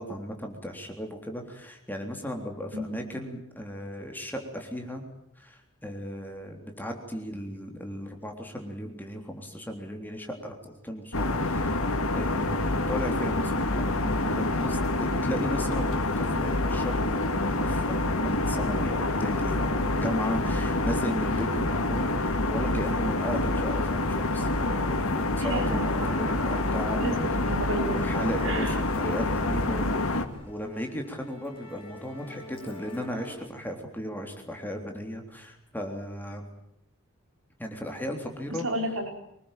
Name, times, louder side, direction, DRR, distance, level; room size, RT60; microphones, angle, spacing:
voice 1, 0.0-5.0 5.4-11.8 12.1-27.2 27.8-36.4 37.6-38.7, equal, 10° left, 2 dB, 3.5 m, -36 dB
sound 1, 11.1-30.3, left 2 dB, 85° left, 2.3 m, -27 dB
voice 2, 25.4-26.1 26.9-27.1 27.5-27.9 28.4-28.8 38.6-39.1, right 1 dB, 75° right, 3 dB, 5.1 m, -31 dB
Musical instrument, 25.6-33.4, equal, 25° left, 6.1 m, -45 dB
25.0 x 20.5 x 9.1 m, 0.79 s
head